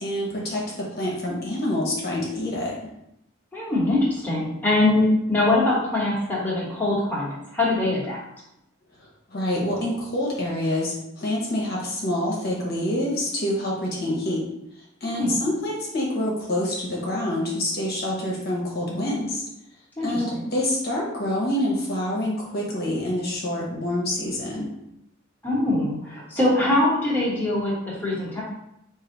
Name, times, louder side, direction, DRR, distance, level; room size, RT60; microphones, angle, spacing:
voice 1, 0.0-2.8 9.3-14.4 15.0-19.4 20.0-24.7, left 1 dB, 45° left, -3 dB, 1.0 m, -26 dB
voice 2, 3.5-8.2 15.1-15.4 20.0-20.4 25.4-28.4, left 2 dB, 10° left, -6 dB, 1.2 m, -23 dB
4.8 x 2.7 x 3.9 m, 0.81 s
head